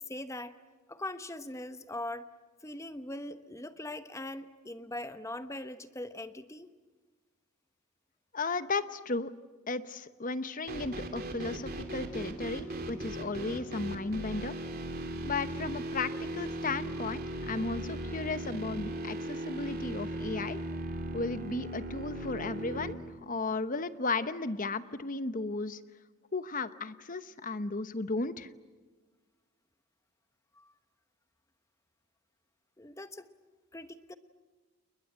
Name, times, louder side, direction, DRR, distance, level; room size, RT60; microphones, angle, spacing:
voice 1, 0.1-0.6 0.9-2.3 2.6-6.7 30.5-30.7 32.8-33.3 33.7-34.2, left 1 dB, 15° left, 11 dB, 1.0 m, -41 dB
voice 2, 8.3-9.3 9.7-14.5 15.2-20.6 21.1-25.8 26.3-28.5, left 3 dB, 40° left, 12 dB, 1.0 m, -35 dB
sound 1, 10.7-22.9, right 1 dB, 45° right, 3.0 m, -38 dB
29.5 x 21.5 x 8.9 m, 1.3 s
head